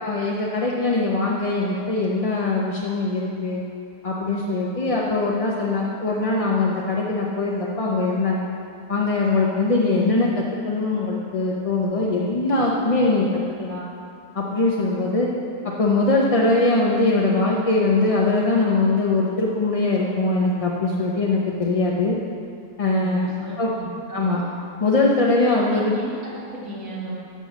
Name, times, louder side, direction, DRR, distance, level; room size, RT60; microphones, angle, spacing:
voice 1, 0.0-3.6 4.0-8.5 8.9-13.3 13.6-13.9 14.3-15.3 15.8-22.2 22.8-23.3 23.6-23.7 24.1-24.4 24.8-26.0, left 2 dB, 35° left, -3 dB, 0.6 m, -21 dB
voice 2, 23.0-23.9 25.7-27.1, right 1 dB, 90° right, -8 dB, 2.4 m, -35 dB
7.7 x 5.8 x 7.2 m, 2.5 s
omnidirectional pair, 1.4 m